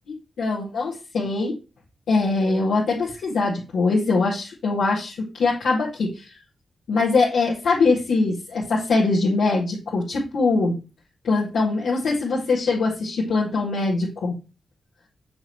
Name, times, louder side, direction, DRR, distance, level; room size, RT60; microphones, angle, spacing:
voice 1, 0.1-1.5 2.1-6.2 6.9-10.8 11.2-14.4, left 3 dB, 85° left, -6 dB, 1.7 m, -22 dB
6.3 x 6.2 x 3.0 m, 0.29 s
cardioid pair, 50°, 0 cm